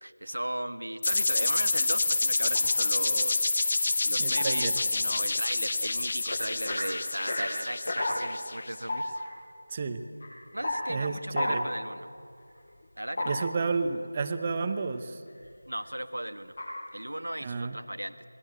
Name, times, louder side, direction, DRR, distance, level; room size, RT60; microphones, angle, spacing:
voice 1, 0.0-3.5 4.0-9.0 10.5-12.1 13.0-13.5 15.7-16.5 16.9-18.2, right 1 dB, 85° right, 10 dB, 1.5 m, -36 dB
sound 1, 1.0-8.8, left 3 dB, 40° left, 1.0 m, -28 dB
sound 2, 2.5-2.9 3.2-14.0 14.2-14.9 15.3-15.8 16.4-16.8, left 1 dB, 55° left, 7.4 m, -36 dB
voice 2, 4.2-4.7 9.7-10.0 10.9-11.7 13.3-15.2 17.4-17.8, right 4 dB, 25° right, 9 dB, 0.9 m, -31 dB
27.0 x 20.0 x 9.0 m, 2.4 s
figure-of-eight pair, 170°, 0 cm